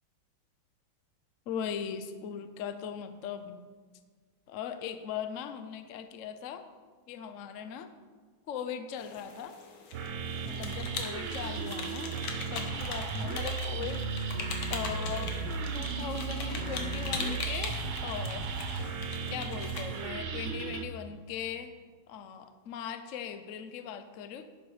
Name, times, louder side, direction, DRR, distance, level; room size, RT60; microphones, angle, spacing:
voice 1, 1.5-3.6 4.5-6.7 7.1-7.9 8.5-9.6 10.4-12.2 12.5-14.0 14.7-15.3 15.7-18.5 19.3-21.7 22.1-24.4, left 8 dB, 65° left, 9 dB, 0.7 m, -39 dB
sound 1, 9.0-20.1, left 4 dB, 85° left, 2.0 m, -41 dB
sound 2, 9.9-20.8, right 5 dB, 80° right, 1.7 m, -35 dB
11.0 x 7.9 x 4.9 m, 1.5 s
omnidirectional pair, 2.1 m